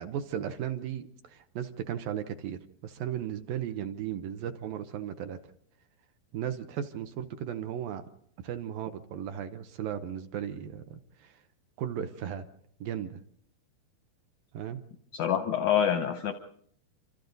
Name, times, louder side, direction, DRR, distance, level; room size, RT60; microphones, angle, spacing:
voice 1, 0.0-5.4 6.3-8.0 8.4-11.4 11.8-12.5 12.8-13.1 14.5-14.8, right 9 dB, 70° right, 8 dB, 2.4 m, -36 dB
voice 2, 15.1-16.3, left 9 dB, 80° left, 8 dB, 1.7 m, -26 dB
28.0 x 25.5 x 4.0 m, 0.66 s
omnidirectional pair, 4.7 m